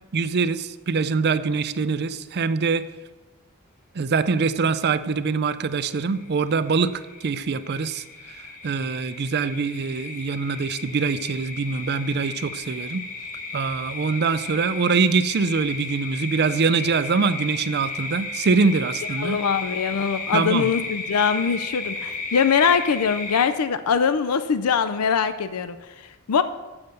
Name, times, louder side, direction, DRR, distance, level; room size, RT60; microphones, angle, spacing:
voice 1, 0.1-2.8 3.9-8.0 8.3-13.0 13.5-19.4 20.3-20.7, right 4 dB, 50° right, 13 dB, 0.5 m, -24 dB
sound 1, 5.4-5.7 6.0-23.4, left 3 dB, 35° left, 1.3 m, -34 dB
voice 2, 19.2-26.4, left 6 dB, 80° left, 12 dB, 0.5 m, -22 dB
7.8 x 7.3 x 6.7 m, 1.2 s
head